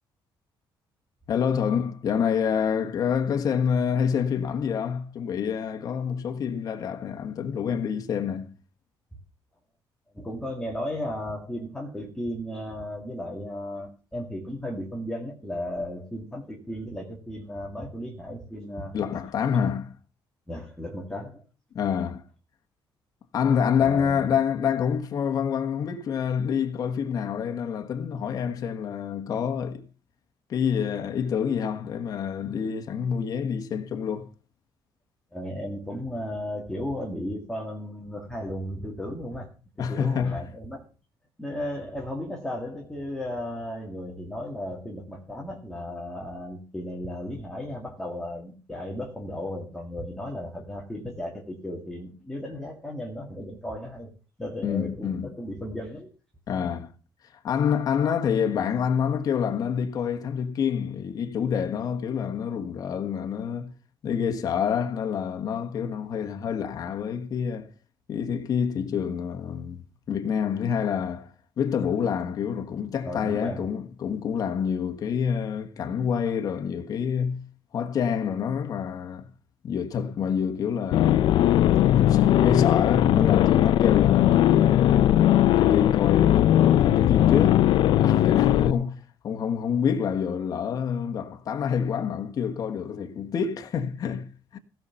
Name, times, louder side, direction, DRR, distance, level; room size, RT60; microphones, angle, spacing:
voice 1, 1.3-8.5 18.9-19.9 21.7-22.2 23.3-29.8 30.5-34.3 39.8-40.4 54.6-55.3 56.5-56.9 57.3-63.7 64.0-67.7 68.1-77.5 77.7-79.3 79.6-81.4 81.9-85.2 85.5-87.6 88.0-94.6, left 7 dB, 45° left, 1.4 m, -27 dB
voice 2, 10.1-18.9 20.5-21.4 23.8-24.3 35.3-39.5 39.8-40.8 41.4-54.1 54.4-56.1 73.0-73.7, left 1 dB, 5° left, 1.9 m, -35 dB
sound 1, 80.9-88.7, left 12 dB, 65° left, 0.5 m, -19 dB
16.0 x 5.6 x 7.0 m
cardioid pair, 160°, 9 cm